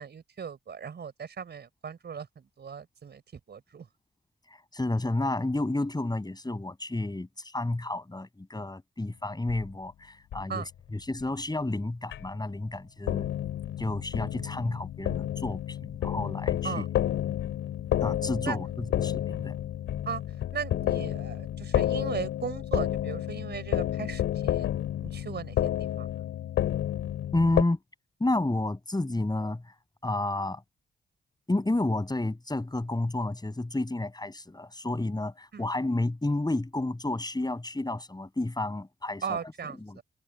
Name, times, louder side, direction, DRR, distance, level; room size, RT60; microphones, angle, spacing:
voice 1, 0.0-3.2 3.5-3.9 10.5-10.7 16.6-16.9 18.4-18.6 20.1-20.2 20.5-24.7 25.0-26.1 35.5-35.7 39.2-40.0, right 7 dB, 60° right, 4.3 m, -37 dB
voice 2, 4.7-10.6 10.9-13.3 13.8-16.8 18.0-19.6 27.3-27.8 28.2-29.7 30.0-30.6 31.5-39.4 39.6-40.0, left 2 dB, 20° left, 7.3 m, -31 dB
sound 1, 9.5-9.6 10.3-10.4 11.2-11.3 12.1-12.3 13.1-27.6, left 11 dB, 80° left, 3.7 m, -30 dB
supercardioid pair, 45°, 20 cm